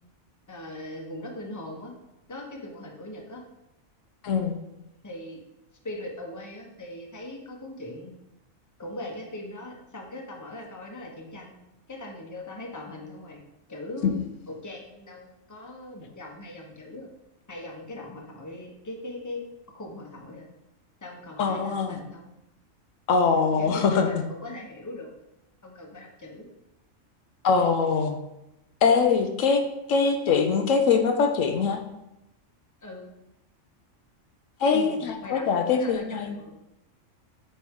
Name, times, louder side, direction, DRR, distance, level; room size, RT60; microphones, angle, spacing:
voice 1, 0.5-1.9 2.3-3.4 5.0-5.4 5.8-8.1 8.8-11.5 11.9-13.4 13.7-14.1 14.5-17.1 17.5-19.4 19.7-20.5 21.0-22.3 23.6-25.1 25.6-26.4 32.8-33.1 34.7-36.6, left 1 dB, 15° left, 0 dB, 0.9 m, -40 dB
voice 2, 4.2-4.6 14.0-14.1 21.4-22.0 23.1-24.2 27.4-28.2 28.8-29.6 29.9-31.8 34.6-36.4, left 5 dB, 75° left, 5 dB, 1.0 m, -23 dB
8.3 x 4.4 x 3.6 m, 0.91 s
omnidirectional pair, 1.4 m